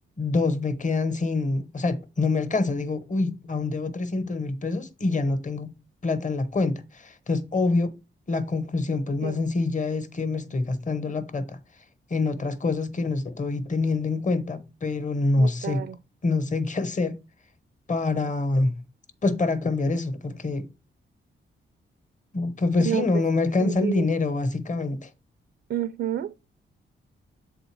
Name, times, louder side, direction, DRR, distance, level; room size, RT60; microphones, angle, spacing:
voice 1, 0.2-5.7 6.0-8.0 8.3-11.6 12.1-15.8 16.2-17.2 17.9-18.8 19.2-20.7 22.3-25.1, left 3 dB, 35° left, 1.0 m, -26 dB
voice 2, 15.4-16.0 22.8-23.1 23.6-24.1 25.7-26.4, right 10 dB, 65° right, 0.4 m, -30 dB
7.6 x 4.0 x 4.6 m
cardioid pair, 85°, 21 cm